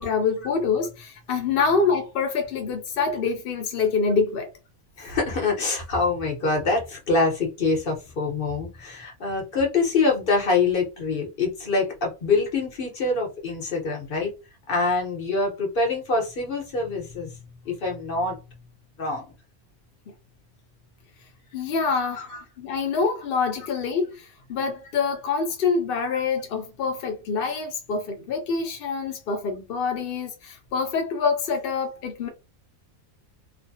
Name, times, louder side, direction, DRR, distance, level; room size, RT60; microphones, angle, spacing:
voice 1, 0.0-4.5 21.5-22.3 22.6-32.3, left 5 dB, 70° left, 0.5 m, -26 dB
voice 2, 5.0-14.3 14.7-17.4 17.6-18.4 19.0-19.3 22.2-22.4, left 3 dB, 45° left, 1.0 m, -25 dB
3.0 x 2.1 x 2.7 m
omnidirectional pair, 1.5 m